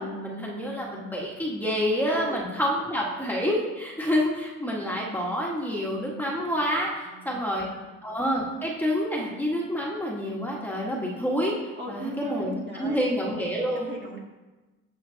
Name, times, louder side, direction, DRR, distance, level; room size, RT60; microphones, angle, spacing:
voice 1, 0.0-7.7 8.0-11.5 11.9-13.9, equal, 5° left, -3 dB, 1.6 m, -28 dB
voice 2, 2.0-2.4 7.0-7.9 11.8-13.0 13.7-14.2, right 2 dB, 35° right, -2 dB, 2.4 m, -39 dB
14.5 x 5.8 x 2.8 m, 1.2 s
cardioid pair, 90°, 30 cm